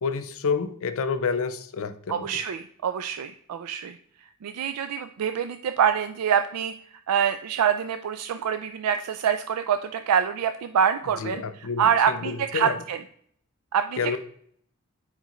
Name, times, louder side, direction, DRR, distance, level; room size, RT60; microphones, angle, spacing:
voice 1, 0.0-2.2 11.2-12.7 14.0-14.2, left 5 dB, 65° left, 9 dB, 0.5 m, -29 dB
voice 2, 2.1-4.0 4.4-6.7 7.1-13.0 13.7-14.2, right 8 dB, 85° right, 9 dB, 0.4 m, -25 dB
8.0 x 5.1 x 3.0 m, 0.64 s
head